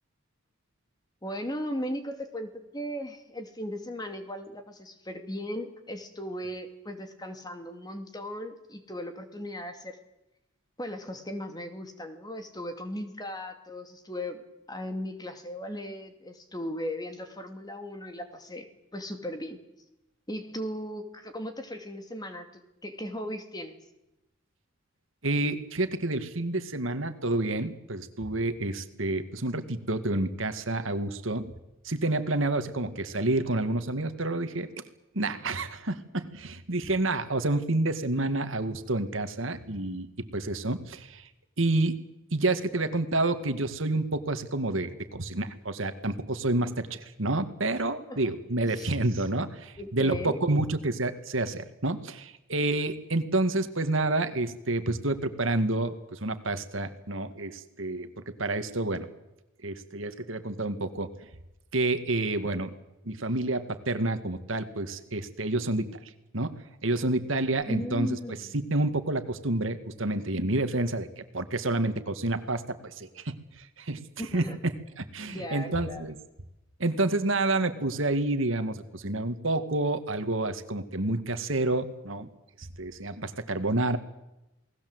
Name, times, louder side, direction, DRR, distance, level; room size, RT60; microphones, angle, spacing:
voice 1, 1.2-10.0 10.8-14.4 14.7-19.6 20.3-23.8 48.1-48.3 48.8-48.9 49.8-50.4 67.7-68.6 74.2-74.6 75.2-76.0, equal, 20° left, 6 dB, 2.5 m, -37 dB
voice 2, 25.2-31.5 31.8-34.7 35.1-41.3 41.6-42.0 42.3-59.1 59.6-61.1 61.7-62.7 63.1-66.5 66.8-68.2 68.5-76.2 76.8-82.3 82.6-84.0, right 2 dB, 70° right, 9 dB, 2.0 m, -29 dB
29.0 x 19.5 x 8.0 m, 0.93 s
head